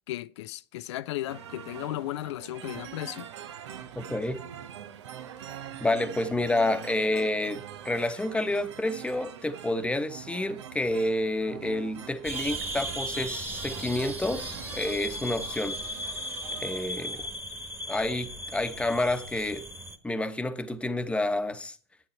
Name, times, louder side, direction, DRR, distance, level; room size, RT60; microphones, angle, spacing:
voice 1, 0.1-3.3, left 15 dB, 80° left, 0.5 m, -35 dB
sound 1, 1.3-17.3, right 9 dB, 85° right, 1.0 m, -44 dB
voice 2, 4.0-4.4 5.8-15.8 16.6-17.2 17.9-19.6 20.0-21.8, left 1 dB, 10° left, 1.0 m, -29 dB
sound 2, 12.2-20.0, equal, 15° right, 1.6 m, -36 dB
11.0 x 8.9 x 4.4 m
hypercardioid pair, 105°, 14 cm